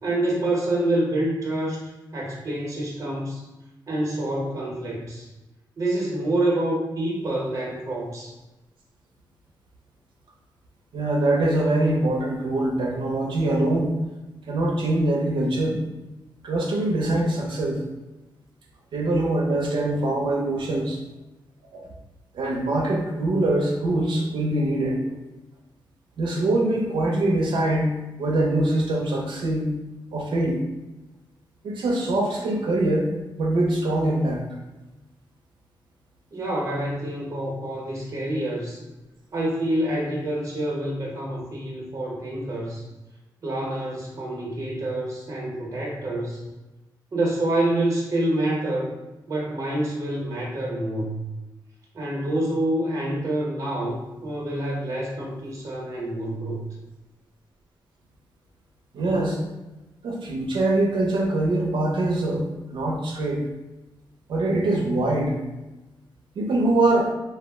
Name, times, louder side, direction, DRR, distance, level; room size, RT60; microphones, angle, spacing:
voice 1, 0.0-3.4 3.9-5.3 5.8-8.3 36.3-38.8 39.3-42.8 43.4-46.4 47.1-48.9 49.3-51.2 51.9-56.6, right 1 dB, 40° right, -3 dB, 0.7 m, -27 dB
voice 2, 10.9-14.0 14.5-15.8 16.4-17.8 18.9-21.0 21.7-21.9 22.3-25.0 26.2-27.9 28.2-29.7 30.1-30.6 31.6-33.1 33.4-34.4 58.9-59.4 60.0-62.4 62.7-63.4 64.3-65.4 66.4-67.1, right 2 dB, 85° right, -1 dB, 0.5 m, -23 dB
2.3 x 2.0 x 3.4 m, 1.0 s
wide cardioid pair, 115°, 8 cm